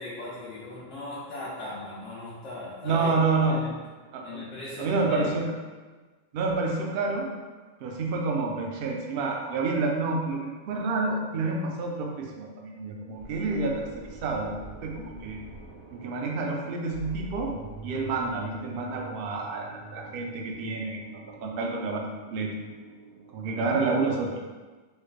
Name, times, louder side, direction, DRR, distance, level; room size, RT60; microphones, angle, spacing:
voice 1, 0.0-3.2 3.5-3.8 4.1-5.3, left 2 dB, 80° left, -9 dB, 1.0 m, -38 dB
voice 2, 2.8-3.6 4.1-4.4 4.8-5.5 6.3-7.3 7.8-13.9 14.2-14.5 14.8-15.4 15.9-17.5 17.8-21.0 21.4-22.6 23.3-24.3, right 3 dB, 60° right, 0 dB, 0.6 m, -28 dB
sound 1, 13.1-23.6, right 3 dB, 20° left, 0.5 m, -45 dB
3.2 x 3.2 x 2.3 m, 1.3 s
omnidirectional pair, 1.3 m